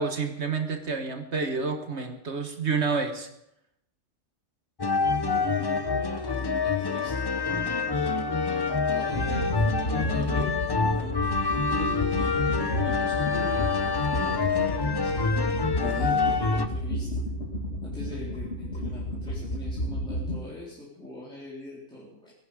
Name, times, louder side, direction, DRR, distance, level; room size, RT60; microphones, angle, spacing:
voice 1, 0.0-3.3, right 4 dB, 60° right, 6 dB, 1.5 m, -29 dB
sound 1, 4.8-16.7, left 4 dB, 25° left, 0.7 m, -26 dB
voice 2, 5.0-7.1 7.8-8.2 8.8-13.7 14.1-17.1 17.8-22.3, left 1 dB, 5° left, -8 dB, 3.9 m, -42 dB
sound 2, 9.1-20.4, equal, 55° left, 3.0 m, -32 dB
22.0 x 11.0 x 5.0 m, 0.80 s
omnidirectional pair, 1.3 m